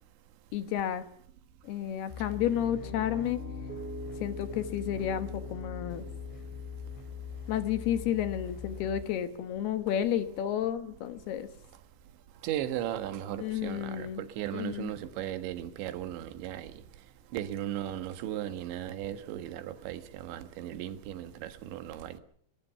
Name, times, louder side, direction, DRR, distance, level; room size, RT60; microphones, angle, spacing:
voice 1, 0.5-1.1 1.6-3.4 4.2-6.0 7.5-11.5 13.4-14.2 14.5-14.9, left 10 dB, 70° left, 3.1 m, -31 dB
sound 1, 2.1-9.0, left 7 dB, 90° left, 5.0 m, -42 dB
Piano, 2.3-10.4, right 1 dB, 20° right, 1.6 m, -46 dB
voice 2, 12.4-16.7 17.3-22.2, right 11 dB, 80° right, 3.8 m, -36 dB
23.5 x 21.5 x 5.8 m
omnidirectional pair, 5.2 m